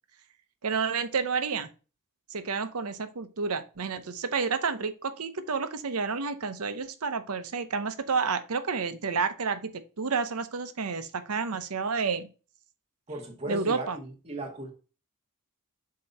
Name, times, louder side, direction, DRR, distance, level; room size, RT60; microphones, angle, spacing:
voice 1, 0.6-1.7 2.3-12.3 13.5-14.0, right 5 dB, 75° right, 0.8 m, -30 dB
voice 2, 13.1-14.7, right 2 dB, 30° right, 1.7 m, -37 dB
7.5 x 2.9 x 5.4 m
head